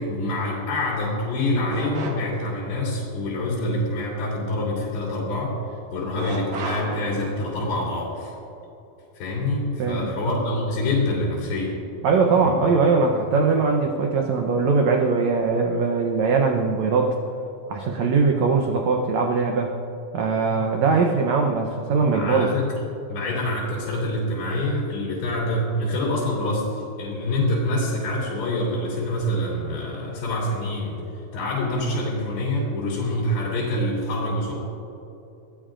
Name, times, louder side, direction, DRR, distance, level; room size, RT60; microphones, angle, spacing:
voice 1, 0.0-5.6 5.9-8.3 9.1-11.7 12.3-12.5 20.5-20.6 22.1-22.8 23.1-31.0 31.3-34.5, left 1 dB, 90° left, -6 dB, 5.1 m, -26 dB
sound 1, 1.7-2.6 6.2-7.7, right 2 dB, 55° right, 2.7 m, -33 dB
voice 2, 9.8-10.2 12.0-17.1 17.7-19.7 20.1-22.5, right 4 dB, 85° right, 2 dB, 1.5 m, -21 dB
24.0 x 17.5 x 2.6 m, 2.9 s
omnidirectional pair, 4.4 m